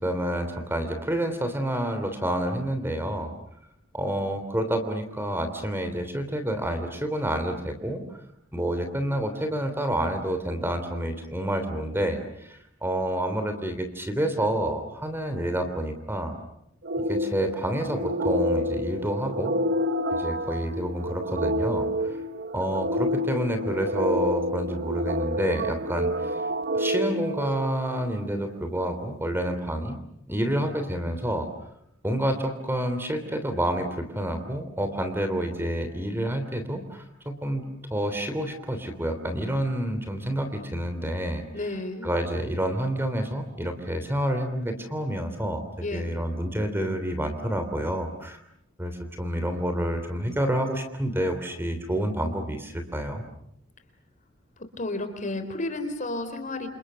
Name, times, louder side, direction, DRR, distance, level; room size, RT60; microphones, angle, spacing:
voice 1, 0.0-3.3 3.9-8.0 8.5-16.3 17.1-19.5 20.1-22.1 22.5-26.3 26.7-30.0 30.3-31.5 32.0-37.6 37.9-41.4 42.0-45.6 45.9-48.4 48.8-48.9 49.2-53.2, right 1 dB, 10° right, 7 dB, 3.2 m, -28 dB
sound 1, 16.8-28.2, equal, 50° right, 1.3 m, -28 dB
voice 2, 41.5-42.1 45.8-46.1 54.8-56.7, left 2 dB, 40° left, 8 dB, 4.1 m, -32 dB
29.0 x 28.5 x 6.9 m, 0.74 s
head